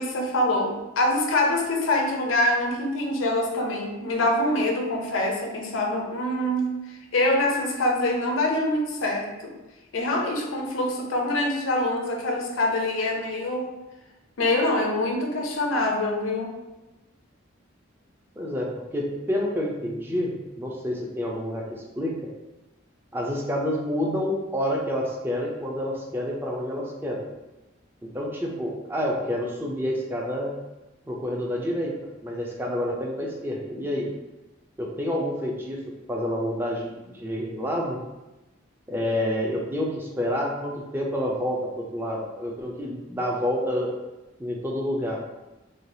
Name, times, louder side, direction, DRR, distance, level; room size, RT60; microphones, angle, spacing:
voice 1, 0.0-9.5 9.9-13.7 14.4-16.6, left 1 dB, 75° left, 1 dB, 0.5 m, -25 dB
voice 2, 18.4-22.1 23.1-27.2 28.0-30.5 31.1-31.9 32.2-34.1 34.8-35.8 36.1-38.0 38.9-43.9 44.4-45.2, equal, 10° right, -1 dB, 0.4 m, -28 dB
3.2 x 2.3 x 2.6 m, 1.0 s
head